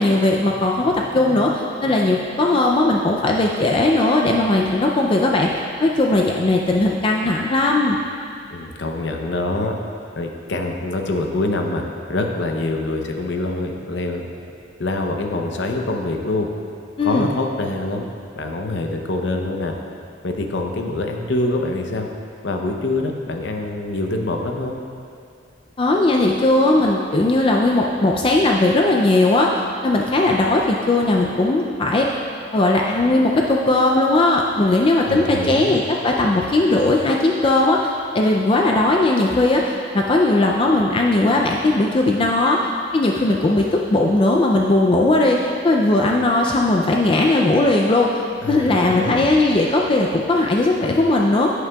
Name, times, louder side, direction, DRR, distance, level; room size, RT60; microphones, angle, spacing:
voice 1, 0.0-5.5 5.8-8.0 17.0-17.3 25.8-32.1 32.5-51.5, left 2 dB, 30° left, 0 dB, 0.4 m, -18 dB
voice 2, 8.5-9.7 10.1-11.8 12.1-14.3 14.8-16.5 17.0-18.1 18.4-19.7 20.2-22.1 22.4-24.8 35.1-35.8 48.4-49.3, left 2 dB, 65° left, 3 dB, 0.7 m, -25 dB
11.0 x 8.0 x 2.3 m, 2.4 s
head